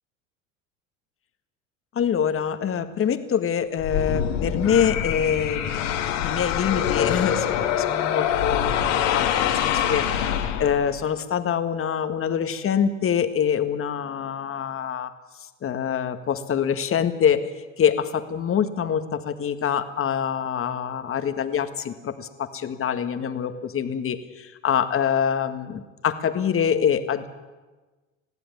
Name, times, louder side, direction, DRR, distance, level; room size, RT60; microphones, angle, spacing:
voice 1, 2.0-8.7 9.1-15.1 15.6-17.5 17.8-27.3, left 8 dB, 35° left, 9 dB, 1.8 m, -25 dB
sound 1, 3.8-11.0, left 9 dB, 70° left, 2.6 m, -25 dB
20.5 x 15.5 x 9.5 m, 1.2 s
hypercardioid pair, 80°, 38 cm